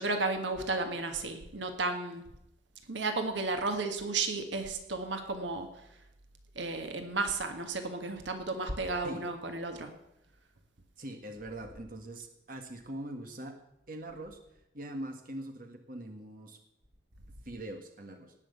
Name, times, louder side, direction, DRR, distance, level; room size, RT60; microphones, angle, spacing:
voice 1, 0.0-2.2 2.9-5.7 6.5-9.9, right 3 dB, 85° right, 6 dB, 1.6 m, -33 dB
voice 2, 11.0-13.6 13.9-14.4 14.7-16.6 17.4-18.3, right 1 dB, 50° right, 5 dB, 1.6 m, -42 dB
18.0 x 6.2 x 8.0 m, 0.85 s
head